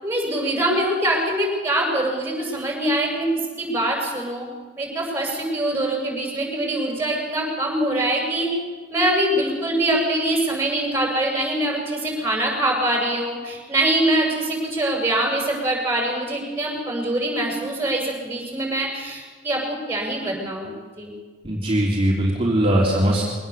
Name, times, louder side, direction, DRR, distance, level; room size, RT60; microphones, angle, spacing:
voice 1, 0.0-3.3 3.6-4.5 4.8-8.5 8.9-21.1, right 1 dB, 10° right, -1 dB, 7.3 m, -24 dB
voice 2, 21.4-23.2, right 1 dB, 30° right, -3 dB, 3.5 m, -20 dB
23.0 x 19.0 x 7.2 m, 1.4 s
head